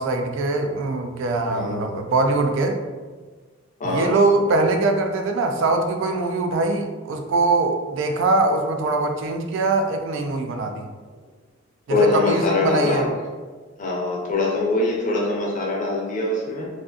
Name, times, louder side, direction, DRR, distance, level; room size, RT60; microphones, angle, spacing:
voice 1, 0.0-2.8 3.8-10.9 11.9-13.1, right 3 dB, 65° right, 5 dB, 0.3 m, -22 dB
voice 2, 1.4-1.8 3.8-4.1 11.9-13.1 13.8-16.7, left 2 dB, 40° left, -2 dB, 0.5 m, -23 dB
2.5 x 2.5 x 2.3 m, 1.4 s
head